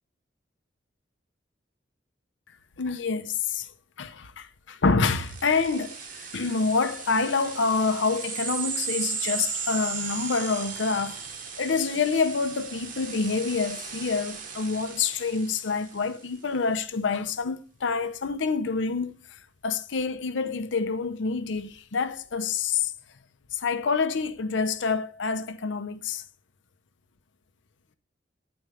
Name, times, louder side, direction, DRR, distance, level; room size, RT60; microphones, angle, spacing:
voice 1, 2.8-3.7 4.0-11.2 11.6-19.1 19.6-22.9 23.5-26.2, left 4 dB, 80° left, 0.7 m, -27 dB
sound 1, 5.1-16.2, right 6 dB, 45° right, 1.1 m, -36 dB
9.4 x 4.3 x 4.9 m
head